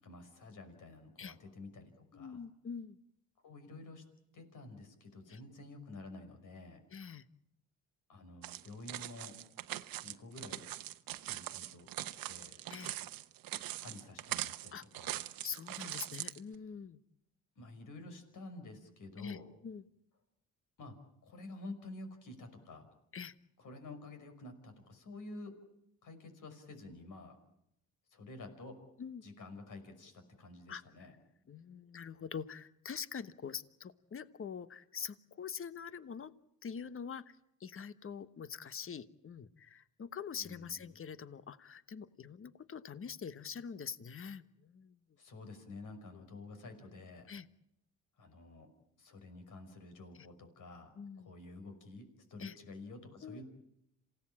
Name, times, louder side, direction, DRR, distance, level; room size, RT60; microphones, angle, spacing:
voice 1, 0.0-2.4 3.4-4.0 4.3-6.8 8.1-9.4 10.0-10.7 11.2-11.9 12.3-12.6 13.7-15.2 17.6-19.5 20.8-21.0 21.2-22.9 23.6-25.6 26.0-27.4 28.1-28.8 29.2-31.1 40.4-40.9 45.2-47.3 48.2-48.7 49.0-53.4, left 2 dB, 65° left, 7 dB, 5.7 m, -50 dB
voice 2, 2.1-3.0 5.3-5.4 6.9-7.2 12.7-13.0 14.7-14.8 15.4-17.0 19.2-19.8 23.1-23.3 29.0-29.2 30.7-31.1 31.5-36.3 36.6-45.0 46.1-46.2 47.3-47.5 51.0-51.3 52.4-52.6 53.2-53.4, left 6 dB, 40° left, 14 dB, 1.2 m, -45 dB
sound 1, 8.4-16.4, right 14 dB, 80° right, 1.1 m, -42 dB
27.5 x 17.0 x 8.7 m, 0.81 s
cardioid pair, 80°, 34 cm